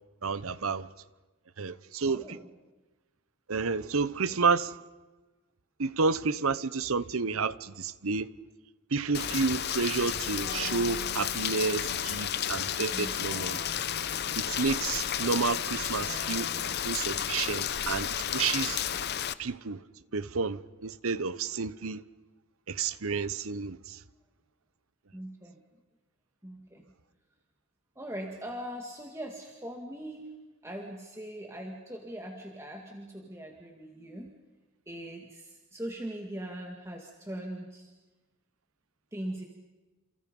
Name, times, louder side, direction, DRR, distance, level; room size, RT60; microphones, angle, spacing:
voice 1, 0.2-0.9 1.6-2.4 3.5-4.7 5.8-8.3 8.9-13.6 14.4-16.5 16.8-18.8 19.4-19.8 20.1-22.0 22.7-24.0, right 4 dB, 70° right, 0.9 m, -30 dB
voice 2, 2.1-2.4 12.9-13.1 25.1-25.6 26.4-26.9 28.0-30.3 30.6-34.3 34.9-37.9 39.1-39.4, right 1 dB, 10° right, 2.0 m, -40 dB
Rain, 9.1-19.3, left 9 dB, 50° left, 0.8 m, -32 dB
sound 1, 10.4-16.9, left 4 dB, 70° left, 4.5 m, -47 dB
29.0 x 28.5 x 5.4 m
head